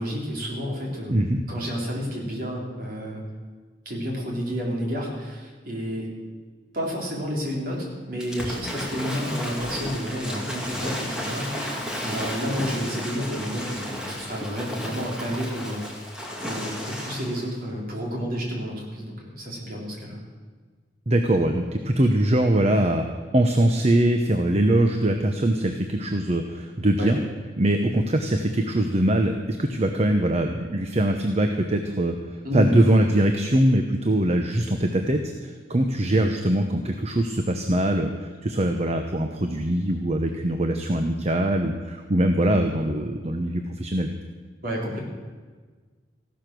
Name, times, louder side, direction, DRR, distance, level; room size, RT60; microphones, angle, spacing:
voice 1, 0.0-1.1 1.5-3.2 3.9-6.1 6.7-16.0 16.4-20.2 27.0-27.1 32.4-32.8 44.6-45.0, equal, 50° right, -2 dB, 3.8 m, -30 dB
Waves surf / Splash splatter, 8.2-17.5, left 1 dB, 5° right, 2.3 m, -33 dB
voice 2, 21.1-23.0 23.3-27.2 27.6-32.1 32.5-38.1 38.4-44.1, right 1 dB, 35° right, 5 dB, 0.9 m, -22 dB
15.5 x 12.0 x 6.2 m, 1.4 s
head